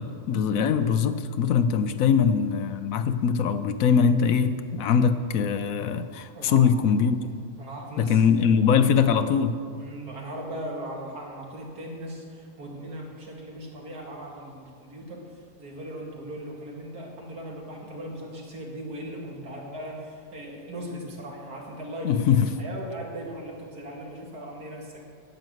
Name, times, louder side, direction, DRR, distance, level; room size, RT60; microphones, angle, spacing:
voice 1, 0.0-7.2 8.0-9.6 22.0-22.5, left 7 dB, 70° left, 11 dB, 1.0 m, -22 dB
voice 2, 6.3-6.7 7.6-9.1 9.7-22.1 22.4-25.0, right 1 dB, 85° right, -1 dB, 2.7 m, -38 dB
10.5 x 9.3 x 7.6 m, 2.2 s
omnidirectional pair, 1.6 m